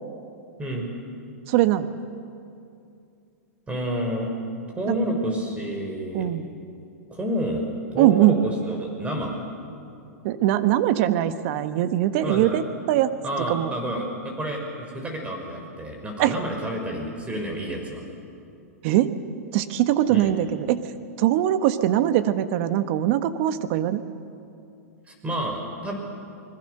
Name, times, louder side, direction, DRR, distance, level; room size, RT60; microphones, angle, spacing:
voice 1, 0.6-0.9 3.7-4.3 4.8-6.3 7.1-7.6 7.9-9.4 12.2-12.6 13.2-18.0 20.1-20.3 25.1-25.9, right 1 dB, 15° right, 2 dB, 5.8 m, -29 dB
voice 2, 1.5-1.9 4.9-5.0 6.1-6.5 7.9-8.4 10.2-13.1 13.5-13.7 16.2-16.3 18.8-19.1 19.5-20.8 21.2-24.0, right 13 dB, 50° right, 11 dB, 1.4 m, -21 dB
29.5 x 21.0 x 6.7 m, 2.6 s
hypercardioid pair, 115°, 9 cm